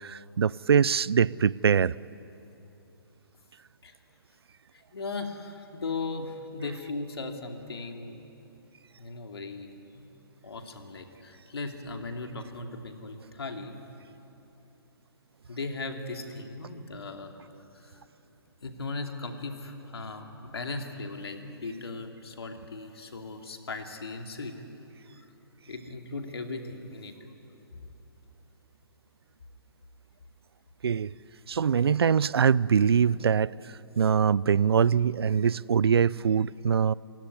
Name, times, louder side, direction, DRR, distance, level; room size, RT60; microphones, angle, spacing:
voice 1, 0.0-1.9 30.8-31.1 31.5-33.5 34.0-36.9, right 7 dB, 80° right, 0.5 m, -23 dB
voice 2, 4.9-8.2 9.0-10.1 10.4-13.8 15.5-17.3 17.8-18.0 18.6-24.5 25.7-27.1 27.7-27.8, left 3 dB, 80° left, 2.8 m, -37 dB
28.5 x 17.0 x 9.6 m
hypercardioid pair, 140°, 13 cm